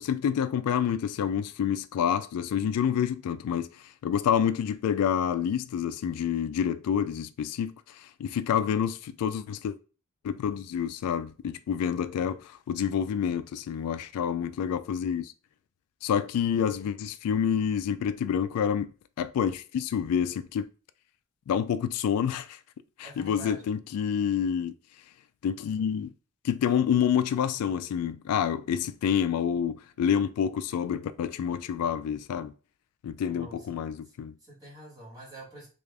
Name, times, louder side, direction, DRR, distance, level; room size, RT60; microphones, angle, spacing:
voice 1, 0.0-9.8 10.2-15.3 16.0-18.9 19.2-20.7 21.5-22.6 23.0-24.7 25.4-26.1 26.4-32.5 33.0-34.3, left 8 dB, 90° left, 0.3 m, -28 dB
voice 2, 16.5-16.8 23.0-23.6 33.3-33.7 34.0-34.1 34.4-35.7, right 1 dB, 15° right, 1.7 m, -47 dB
3.3 x 2.4 x 3.4 m
head